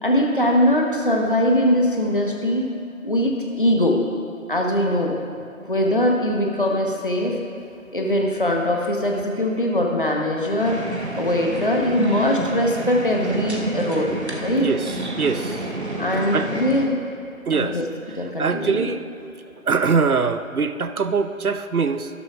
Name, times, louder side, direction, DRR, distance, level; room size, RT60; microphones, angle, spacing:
voice 1, 0.0-2.7 3.0-4.0 4.5-7.4 7.9-10.8 11.1-14.7 16.0-17.0 17.5-17.9 18.1-18.9, left 1 dB, 40° left, 0 dB, 1.1 m, -21 dB
sound 1, 10.6-16.9, right 1 dB, 50° right, 1.1 m, -30 dB
voice 2, 15.2-15.6 16.3-16.5 17.5-17.7 18.4-19.0 19.7-22.1, right 5 dB, 90° right, 10 dB, 0.7 m, -22 dB
12.5 x 11.0 x 2.4 m, 2.6 s
figure-of-eight pair, 170°, 42 cm